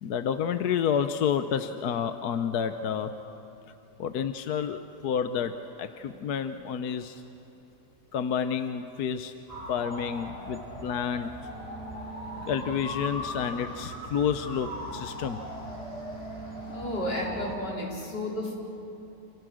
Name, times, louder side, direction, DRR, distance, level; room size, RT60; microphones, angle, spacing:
voice 1, 0.0-3.1 4.0-5.5 5.8-7.2 8.1-9.3 9.7-11.3 12.4-15.4, left 7 dB, 70° left, 9 dB, 1.3 m, -29 dB
sound 1, 9.5-17.6, left 1 dB, 20° left, 3.7 m, -39 dB
sound 2, 11.4-17.5, right 5 dB, 10° right, 5.3 m, -45 dB
voice 2, 16.7-18.5, left 1 dB, 90° left, -3 dB, 5.2 m, -32 dB
29.0 x 28.0 x 6.4 m, 3.0 s
omnidirectional pair, 1.8 m